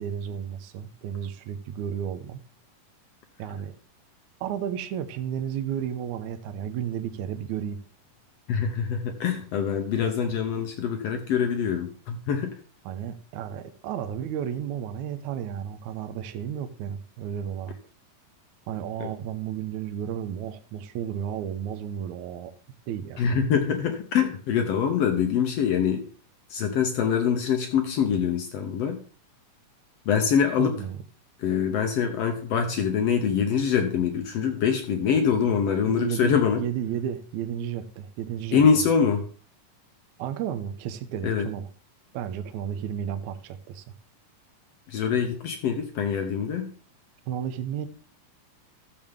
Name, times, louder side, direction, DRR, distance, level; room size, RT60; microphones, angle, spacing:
voice 1, 0.0-2.4 3.4-3.7 4.4-7.8 12.9-17.8 18.7-22.5 22.9-23.2 30.6-31.0 35.8-38.6 40.2-41.7 42.1-43.9 47.3-47.9, right 9 dB, 70° right, 2.0 m, -32 dB
voice 2, 8.5-12.6 19.0-19.1 23.2-26.1 26.5-29.0 30.1-30.8 31.4-36.6 38.5-39.2 41.2-41.5 44.9-46.7, left 7 dB, 75° left, 1.5 m, -24 dB
14.5 x 7.0 x 3.6 m
omnidirectional pair, 3.9 m